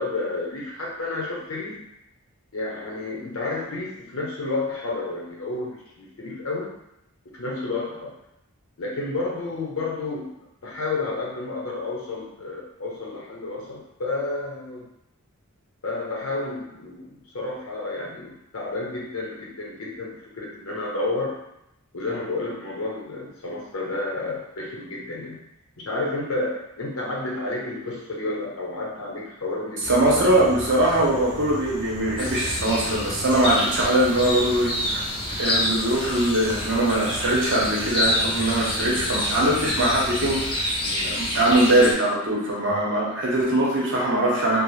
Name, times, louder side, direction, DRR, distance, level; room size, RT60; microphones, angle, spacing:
voice 1, 0.0-1.8 2.5-6.7 7.3-8.1 8.8-10.3 10.6-14.9 15.8-21.4 21.9-25.4 25.9-30.4 40.8-41.2, left 2 dB, 65° left, -3 dB, 0.7 m, -31 dB
sound 1, 29.8-40.5, equal, 20° right, 0.6 m, -38 dB
voice 2, 29.9-35.0 35.4-40.6 41.0-44.6, right 1 dB, 55° right, -4 dB, 0.7 m, -21 dB
sound 2, 32.2-41.9, left 1 dB, 25° left, 0.4 m, -28 dB
2.4 x 2.0 x 3.1 m, 0.82 s
head